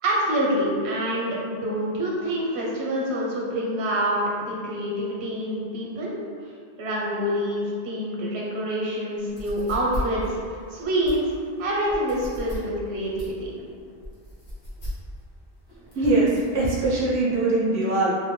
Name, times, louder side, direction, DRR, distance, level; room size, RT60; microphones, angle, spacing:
voice 1, 0.0-6.1 6.8-11.3 11.6-13.5, equal, 85° right, -4 dB, 0.9 m, -26 dB
sound 1, 9.2-16.6, equal, 75° left, 1.2 m, -36 dB
voice 2, 15.9-18.1, right 2 dB, 25° right, -7 dB, 0.4 m, -22 dB
2.5 x 2.1 x 3.0 m, 2.2 s
omnidirectional pair, 1.1 m